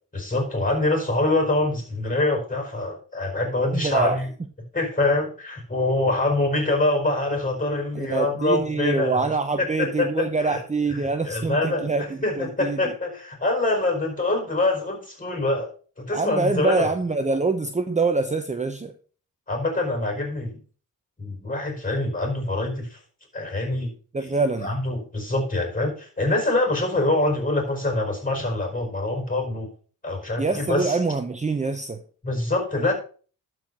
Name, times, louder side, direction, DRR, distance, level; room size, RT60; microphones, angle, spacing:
voice 1, 0.1-4.3 4.7-9.3 9.6-10.6 10.9-11.9 12.2-15.7 16.0-16.9 19.5-20.6 21.2-23.0 23.3-23.9 24.2-29.7 30.0-31.0 32.2-32.9, left 2 dB, 20° left, 4.8 m, -25 dB
voice 2, 3.7-4.2 7.9-12.9 16.1-18.9 24.1-24.7 30.4-32.0, right 3 dB, 20° right, 0.9 m, -25 dB
12.0 x 4.9 x 5.4 m
cardioid pair, 90°, 35 cm